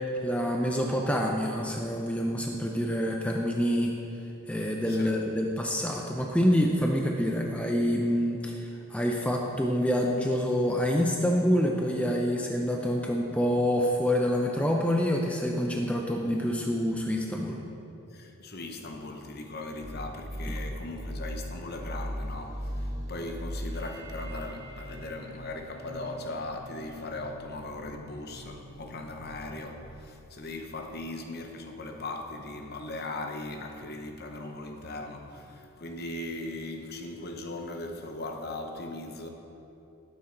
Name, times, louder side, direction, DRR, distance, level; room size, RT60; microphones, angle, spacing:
voice 1, 0.2-3.9 4.5-17.6, equal, 5° left, 0 dB, 0.5 m, -27 dB
voice 2, 16.3-17.0 18.1-39.3, left 2 dB, 45° left, 4 dB, 0.9 m, -39 dB
sound 1, 19.8-29.9, equal, 55° right, 1.9 m, -39 dB
12.5 x 8.7 x 3.9 m, 2.9 s
head